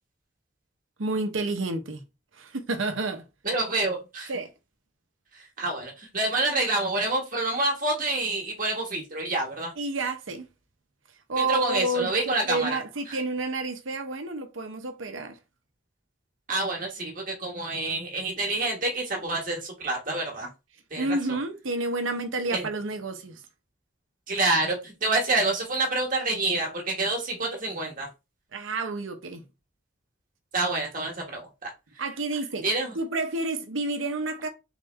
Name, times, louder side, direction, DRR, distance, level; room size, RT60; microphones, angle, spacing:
voice 1, 1.0-2.0 2.3-3.3 4.3-4.5 9.8-10.5 11.3-15.4 21.0-23.4 28.5-29.4 32.0-34.5, right 2 dB, 80° right, 0.8 m, -30 dB
voice 2, 3.4-4.3 5.6-9.7 11.4-12.8 16.5-20.5 20.9-21.1 22.5-22.7 24.3-28.1 30.5-31.7 32.6-32.9, right 2 dB, 45° right, 1.4 m, -27 dB
4.0 x 3.5 x 3.3 m
head